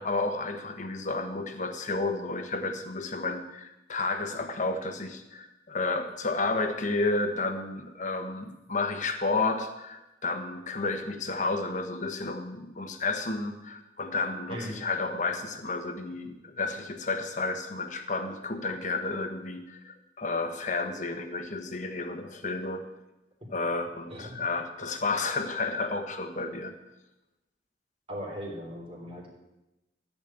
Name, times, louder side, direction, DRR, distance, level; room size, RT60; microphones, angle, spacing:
voice 1, 0.0-22.9 23.5-26.7, left 3 dB, 45° left, 5 dB, 1.3 m, -31 dB
voice 2, 24.1-24.4 28.1-29.3, equal, 30° right, -2 dB, 3.7 m, -38 dB
14.5 x 5.3 x 8.8 m, 0.97 s
head